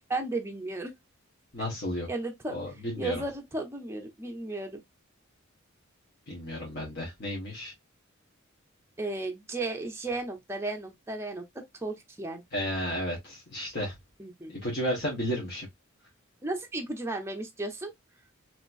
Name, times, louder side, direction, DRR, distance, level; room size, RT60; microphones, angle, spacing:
voice 1, 0.1-0.9 2.1-2.6 3.0-4.8 9.0-12.4 14.2-14.5 16.4-17.9, right 2 dB, 10° right, 0.6 m, -34 dB
voice 2, 1.5-2.1 2.5-3.2 6.3-7.7 12.5-13.9 14.5-15.7, equal, 50° left, 1.4 m, -33 dB
3.1 x 2.9 x 2.4 m
head